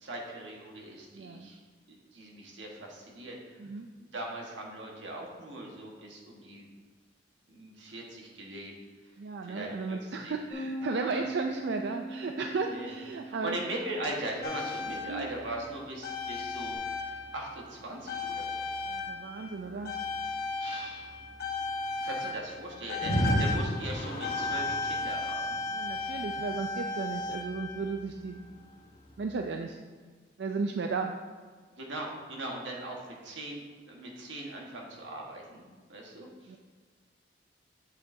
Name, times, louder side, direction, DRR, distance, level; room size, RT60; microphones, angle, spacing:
voice 1, 0.0-1.6 1.9-3.6 4.0-6.7 7.5-8.7 9.4-10.3 11.0-11.2 12.7-12.9 13.2-18.8 19.4-19.5 20.6-21.2 22.0-25.6 25.9-26.1 26.4-26.5 31.8-35.6 35.9-36.6, right 1 dB, 90° right, -1 dB, 1.5 m, -40 dB
voice 2, 1.1-1.5 3.6-3.9 9.2-13.6 15.1-15.3 18.9-19.9 22.2-22.3 23.1-23.5 25.7-28.4 29.2-29.8 30.4-31.1 36.5-36.6, right 4 dB, 65° right, 4 dB, 0.4 m, -35 dB
Bass guitar, 10.5-16.8, right 1 dB, 30° right, 2.1 m, -42 dB
sound 1, 14.4-17.7 18.1-28.1 29.1-29.2, left 2 dB, 55° left, 1.1 m, -34 dB
8.4 x 7.6 x 2.7 m, 1.5 s
head